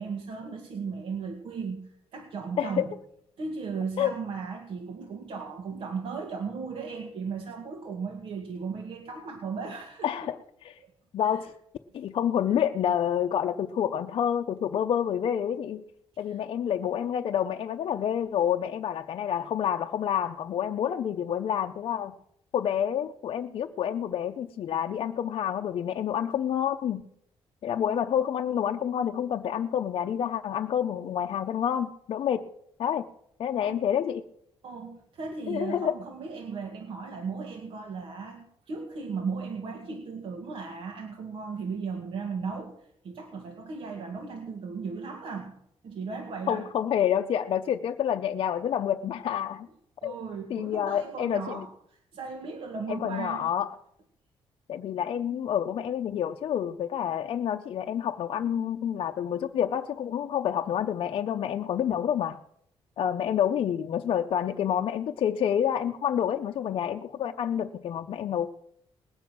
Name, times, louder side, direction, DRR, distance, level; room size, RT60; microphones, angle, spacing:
voice 1, 0.0-1.8 2.1-2.9 3.4-10.3 10.8-10.9 11.2-11.5 16.2-16.4 33.7-33.8 34.6-45.5 45.8-46.7 50.0-53.5, right 5 dB, 65° right, 2 dB, 2.0 m, -36 dB
voice 2, 10.0-10.4 10.6-10.8 11.1-11.5 11.9-15.8 16.2-22.1 22.5-27.0 27.6-32.4 32.8-33.1 33.4-34.2 35.5-35.9 46.5-49.7 50.0-50.1 50.5-51.6 52.9-53.7 54.7-62.4 63.0-68.5, left 9 dB, 60° left, 4 dB, 0.7 m, -28 dB
20.0 x 9.0 x 6.1 m, 0.72 s
cardioid pair, 135°, 10 cm